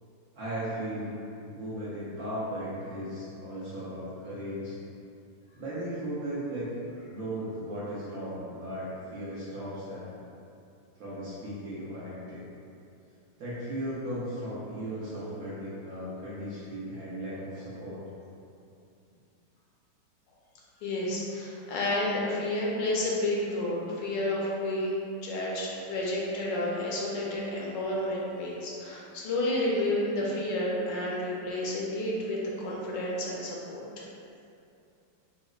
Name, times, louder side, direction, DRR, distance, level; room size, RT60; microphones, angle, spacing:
voice 1, 0.3-1.1 1.5-4.8 5.6-6.7 7.1-10.1 11.0-12.4 13.4-18.0, right 1 dB, 70° right, -10 dB, 0.9 m, -36 dB
voice 2, 20.8-32.4 32.6-34.0, left 1 dB, 80° left, -4 dB, 1.2 m, -30 dB
3.9 x 2.1 x 2.3 m, 2.6 s
omnidirectional pair, 2.0 m